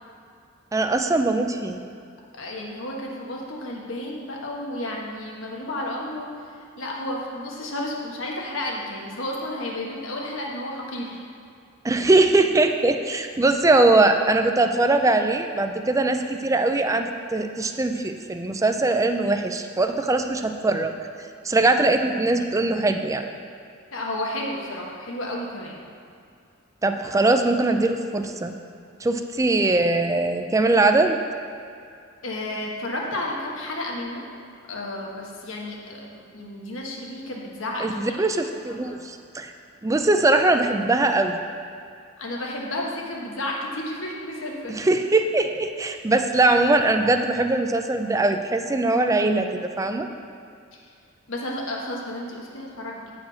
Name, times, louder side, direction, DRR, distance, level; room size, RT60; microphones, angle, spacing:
voice 1, 0.7-1.8 11.8-20.9 21.4-23.3 26.8-28.5 29.0-31.2 37.8-39.5 39.8-41.4 44.7-50.1, right 2 dB, 15° right, 6 dB, 0.4 m, -21 dB
voice 2, 2.4-6.3 6.8-11.2 23.9-25.7 32.2-34.2 34.7-38.2 38.8-39.0 42.2-44.8 51.3-53.1, left 1 dB, 75° left, -2 dB, 1.4 m, -32 dB
8.6 x 5.0 x 5.6 m, 2.4 s
head